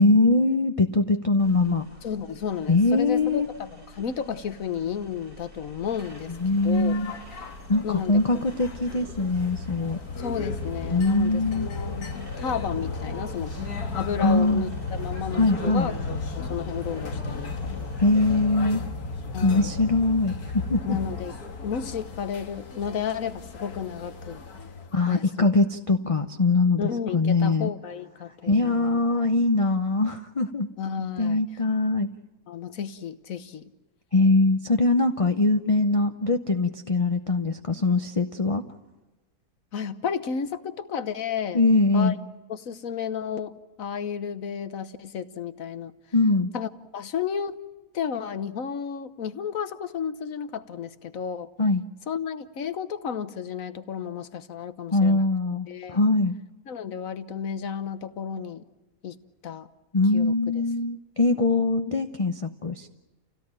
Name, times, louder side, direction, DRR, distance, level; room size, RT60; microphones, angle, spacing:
voice 1, 0.0-1.9 2.7-3.5 6.4-7.2 7.7-10.0 10.9-11.7 14.2-14.7 15.3-15.9 18.0-18.8 19.4-21.0 24.9-27.7 28.4-30.7 31.2-32.1 34.1-38.6 41.5-42.2 46.1-46.5 51.6-51.8 54.9-56.3 59.9-63.0, left 2 dB, 30° left, 7 dB, 0.7 m, -22 dB
sound 1, 1.4-18.5, equal, 70° right, 5.6 m, -48 dB
voice 2, 2.0-6.3 6.6-7.0 7.8-8.5 10.2-13.5 13.9-15.9 16.3-17.9 19.3-19.7 20.9-24.4 25.1-25.5 26.8-29.0 30.8-31.4 32.5-33.7 39.7-41.6 41.9-42.2 42.5-43.5 43.8-45.9 46.5-47.6 47.9-51.5 52.1-55.3 55.7-56.0 56.7-58.6 59.0-59.7 60.1-60.6, left 7 dB, 65° left, 12 dB, 1.4 m, -32 dB
sound 2, 5.9-25.1, left 3 dB, 90° left, 2.2 m, -35 dB
29.0 x 17.0 x 8.9 m, 1.1 s
omnidirectional pair, 1.6 m